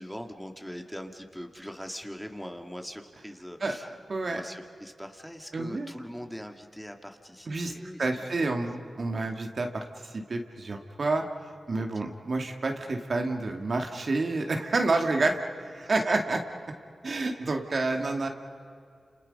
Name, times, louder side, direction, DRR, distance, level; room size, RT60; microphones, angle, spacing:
voice 1, 0.0-3.9 4.3-8.1 8.4-8.5 9.1-9.3 11.7-12.1 15.8-15.9, equal, 5° left, 4 dB, 2.4 m, -42 dB
voice 2, 4.1-4.4 5.5-5.9 7.5-7.7 8.0-11.2 11.7-16.4 17.0-18.3, right 3 dB, 60° right, 3 dB, 2.3 m, -29 dB
30.0 x 28.0 x 5.5 m, 2.3 s
cardioid pair, 40°, 0 cm